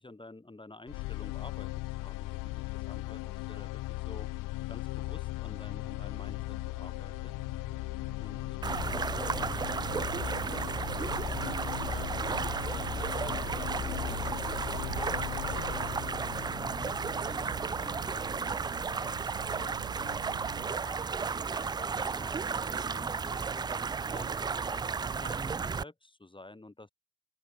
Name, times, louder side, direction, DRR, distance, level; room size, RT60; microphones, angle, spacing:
voice 1, 0.0-4.3 4.7-7.3 8.2-13.5 14.0-21.0 21.5-22.4 22.7-24.8 25.2-26.9, left 2 dB, 10° left, 5.0 m, -50 dB
sound 1, 0.9-18.9, left 20 dB, 45° left, 0.7 m, -38 dB
sound 2, 5.5-20.7, right 21 dB, 70° right, 1.1 m, -52 dB
sound 3, 8.6-25.8, right 5 dB, 10° right, 0.4 m, -33 dB
open air
hypercardioid pair, 80°, 48 cm